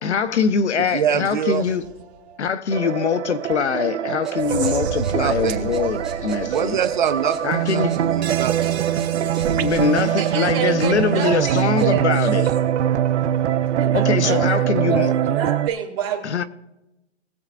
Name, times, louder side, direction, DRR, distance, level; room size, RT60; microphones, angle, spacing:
voice 1, 0.0-1.8 2.4-6.8 7.4-7.9 9.5-12.5 13.9-15.1 16.2-16.4, left 6 dB, 85° left, 1.0 m, -23 dB
voice 2, 0.8-1.6 5.1-5.7 6.3-9.3, right 8 dB, 45° right, 0.8 m, -25 dB
sound 1, 1.6-2.6 3.1-3.2 3.7-3.8 4.4-13.9, right 6 dB, 70° right, 1.5 m, -33 dB
sound 2, 2.7-15.7, right 10 dB, 90° right, 0.6 m, -23 dB
sound 3, 4.2-11.9, right 4 dB, ahead, 1.7 m, -47 dB
voice 3, 10.2-12.1 13.8-15.1 15.4-16.4, right 9 dB, 20° right, 1.6 m, -27 dB
20.5 x 7.8 x 2.5 m
hypercardioid pair, 165°, 33 cm